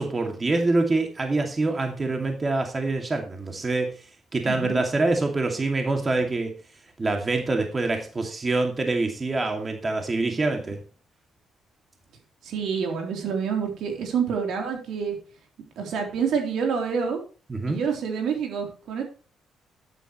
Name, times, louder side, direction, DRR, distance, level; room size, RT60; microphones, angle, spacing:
voice 1, 0.0-3.9 4.3-6.5 7.0-10.8 17.5-17.8, right 2 dB, 30° right, 3 dB, 2.5 m, -25 dB
voice 2, 4.4-4.8 12.4-15.2 15.8-17.2 17.7-19.0, right 6 dB, 75° right, 2 dB, 3.8 m, -27 dB
12.0 x 9.4 x 3.2 m, 0.36 s
cardioid pair, 90°, 0 cm